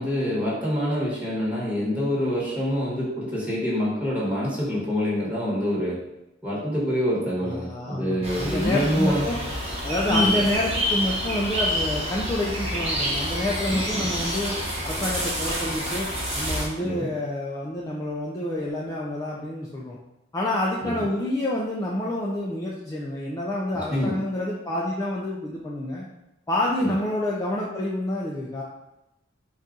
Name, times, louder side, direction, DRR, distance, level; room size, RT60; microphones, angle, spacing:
voice 1, 0.0-6.0 6.4-9.3 10.0-10.5 13.7-14.1 16.8-17.1 20.8-21.0 23.7-24.1 26.8-26.9, equal, 10° right, -7 dB, 1.2 m, -26 dB
voice 2, 7.4-9.4 9.8-14.6 14.8-16.1 16.4-20.0 20.3-26.1 26.5-28.6, left 1 dB, 15° left, -4 dB, 0.4 m, -28 dB
sound 1, 8.2-16.7, equal, 35° right, 0.9 m, -28 dB
4.1 x 2.4 x 3.8 m, 0.91 s
head